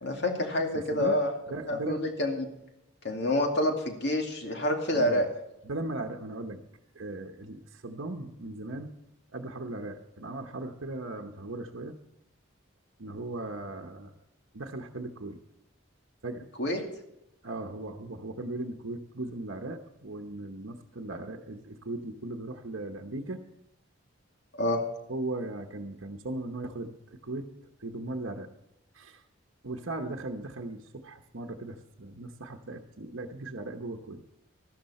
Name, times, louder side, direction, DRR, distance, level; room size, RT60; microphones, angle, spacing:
voice 1, 0.0-1.3 1.7-2.5 3.0-5.3 16.6-16.8 24.5-24.8, left 1 dB, 55° left, 3 dB, 2.4 m, -27 dB
voice 2, 0.7-1.2 1.5-2.0 4.9-5.3 5.6-6.6 6.9-8.9 9.3-12.0 13.0-14.1 14.5-15.4 16.2-16.5 17.4-23.4 25.1-27.5 27.8-28.5 28.9-29.2 29.6-34.2, right 2 dB, 70° right, 3 dB, 1.0 m, -38 dB
14.0 x 12.0 x 4.3 m, 0.88 s
head